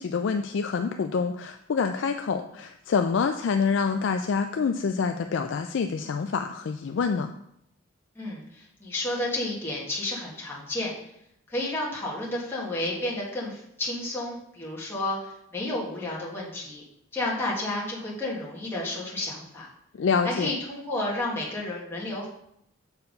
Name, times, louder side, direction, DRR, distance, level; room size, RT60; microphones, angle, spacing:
voice 1, 0.0-7.3 20.0-20.5, left 5 dB, 65° left, 6 dB, 0.3 m, -26 dB
voice 2, 8.1-10.9 11.5-16.8 17.1-19.7 20.2-22.3, left 1 dB, 10° left, -6 dB, 1.6 m, -31 dB
6.9 x 4.5 x 5.2 m, 0.76 s
head